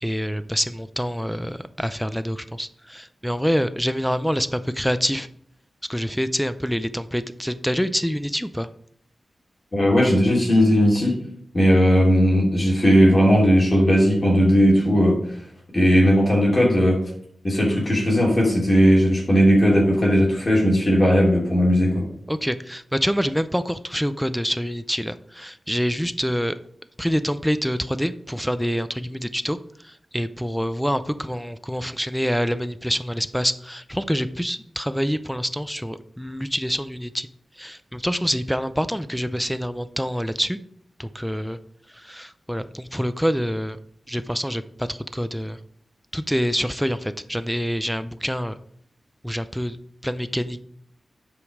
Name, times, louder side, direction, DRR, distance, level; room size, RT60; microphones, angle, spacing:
voice 1, 0.0-5.3 5.9-8.7 22.3-26.6 27.0-29.6 29.9-37.3 37.6-40.6 41.0-41.6 42.0-43.8 44.1-45.6 46.1-48.6 49.2-49.8 50.0-50.6, equal, ahead, 13 dB, 0.5 m, -26 dB
voice 2, 9.7-11.2 11.5-15.2 15.7-17.0 17.4-22.0, equal, 35° left, -3 dB, 2.9 m, -17 dB
8.1 x 5.3 x 4.9 m, 0.67 s
wide cardioid pair, 75°, 0 cm